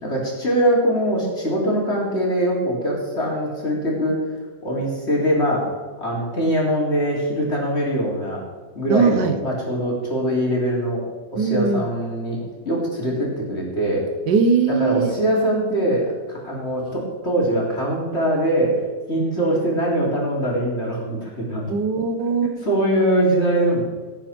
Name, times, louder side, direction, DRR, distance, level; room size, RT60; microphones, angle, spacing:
voice 1, 0.0-4.2 4.6-5.7 6.0-8.4 8.7-11.1 11.3-14.0 14.7-18.8 19.1-21.7 22.4-23.8, right 1 dB, 35° left, -3 dB, 3.6 m, -22 dB
voice 2, 8.9-9.4 11.3-11.8 14.3-15.1 19.1-19.8 21.7-22.5, right 5 dB, 75° right, 9 dB, 1.7 m, -21 dB
18.0 x 9.0 x 4.5 m, 1.4 s
omnidirectional pair, 1.9 m